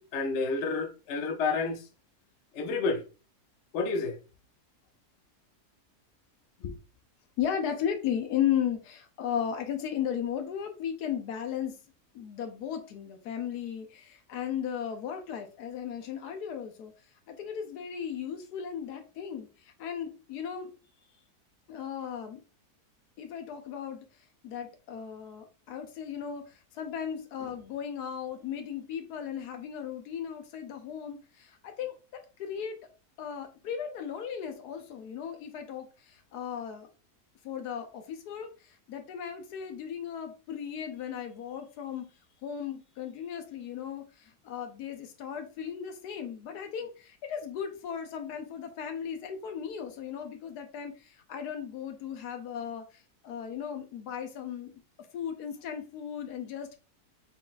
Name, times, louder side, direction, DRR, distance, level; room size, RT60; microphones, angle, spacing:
voice 1, 0.0-1.8 2.5-3.0 3.7-4.2 6.6-6.8, left 4 dB, 55° left, 0.9 m, -30 dB
voice 2, 7.4-11.8 12.1-16.9 17.3-19.5 19.8-20.7 21.7-22.4 23.2-24.1 24.4-32.8 33.2-36.9 37.4-42.1 42.4-54.7 55.1-56.8, left 8 dB, 85° left, 1.3 m, -36 dB
4.1 x 3.9 x 2.4 m
omnidirectional pair, 1.7 m